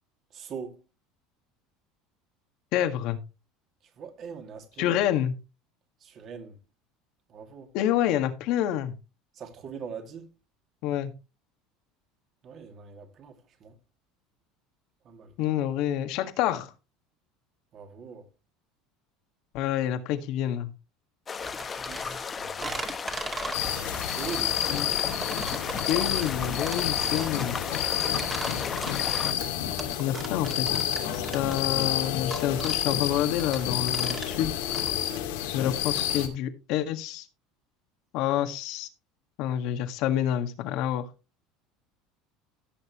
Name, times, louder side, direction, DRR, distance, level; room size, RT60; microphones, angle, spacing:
voice 1, 0.3-0.8 4.0-5.0 6.0-6.6 7.3-7.7 9.3-10.3 12.4-13.8 15.0-15.3 17.7-18.3 21.7-23.6 24.0-24.5 28.0-28.4, right 6 dB, 45° right, 2.5 m, -42 dB
voice 2, 2.7-3.2 4.8-5.3 7.7-8.9 10.8-11.1 15.4-16.7 19.5-20.7 24.7-24.9 25.9-27.6 30.0-30.7 31.1-34.5 35.5-37.3 38.1-38.9 39.4-41.1, left 11 dB, 65° left, 1.7 m, -28 dB
sound 1, 21.3-29.3, left 5 dB, 25° left, 1.0 m, -35 dB
sound 2, 21.4-34.9, right 3 dB, 25° right, 2.1 m, -39 dB
sound 3, 23.5-36.3, left 11 dB, 90° left, 2.4 m, -30 dB
16.0 x 6.6 x 3.1 m
supercardioid pair, 120°, 0 cm